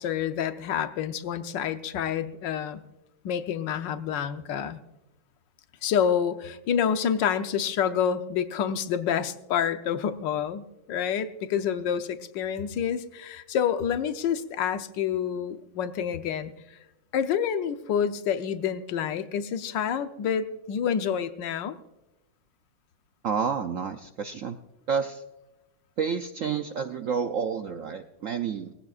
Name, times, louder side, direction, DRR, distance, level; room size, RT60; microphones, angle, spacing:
voice 1, 0.0-2.8 3.2-4.8 5.8-16.5 17.1-21.8, left 8 dB, 70° left, 10 dB, 1.4 m, -28 dB
voice 2, 23.2-24.6 24.9-25.2 26.0-28.7, right 6 dB, 75° right, 7 dB, 0.7 m, -29 dB
20.5 x 15.5 x 2.4 m, 0.99 s
omnidirectional pair, 2.2 m